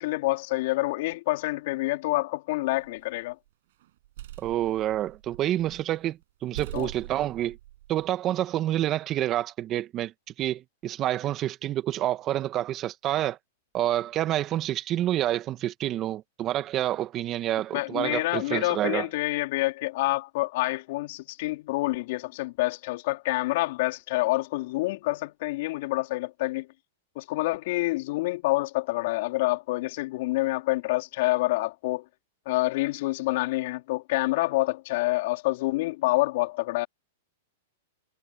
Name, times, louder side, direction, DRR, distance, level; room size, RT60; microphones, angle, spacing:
voice 1, 0.0-3.4 6.7-6.9 17.7-26.7 27.2-32.0 32.5-36.9, left 20 dB, 60° left, 4.1 m, -27 dB
sound 1, 2.7-3.3 3.8-5.9 6.2-6.3 6.5-8.1, right 14 dB, 65° right, 6.9 m, -43 dB
voice 2, 4.4-7.6 7.9-10.1 10.4-13.4 13.7-19.1, right 13 dB, 35° right, 1.5 m, -28 dB
hypercardioid pair, 125°, 0 cm